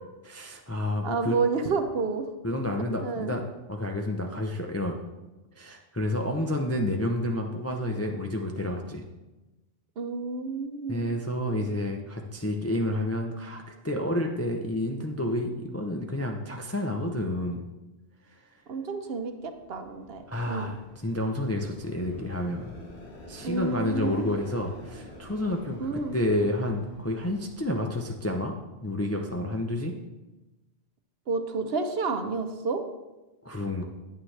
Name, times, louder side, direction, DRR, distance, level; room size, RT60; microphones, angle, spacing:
voice 1, 0.2-1.4 2.4-5.0 5.5-9.0 10.9-17.6 20.3-22.7 23.3-28.5 28.8-29.9 33.4-33.8, left 1 dB, 20° left, 2 dB, 0.4 m, -30 dB
voice 2, 1.0-2.3 3.0-3.3 10.0-11.1 18.7-20.7 23.4-24.4 25.8-26.2 31.3-32.8, right 4 dB, 60° right, 7 dB, 0.9 m, -30 dB
sound 1, 19.1-28.9, left 1 dB, 65° left, 2.0 m, -48 dB
9.2 x 8.8 x 3.3 m, 1.1 s
omnidirectional pair, 1.2 m